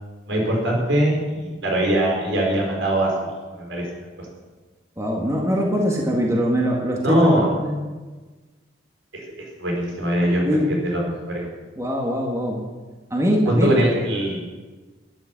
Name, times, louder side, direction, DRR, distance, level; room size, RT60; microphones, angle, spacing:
voice 1, 0.3-3.3 3.6-3.9 7.0-7.5 9.1-9.2 9.6-11.4 13.5-14.4, right 1 dB, 80° right, -1 dB, 4.9 m, -22 dB
voice 2, 5.0-7.3 7.6-7.8 10.4-10.7 11.8-12.6 13.1-13.7, equal, 15° right, -1 dB, 1.7 m, -22 dB
12.5 x 11.0 x 7.4 m, 1.3 s
head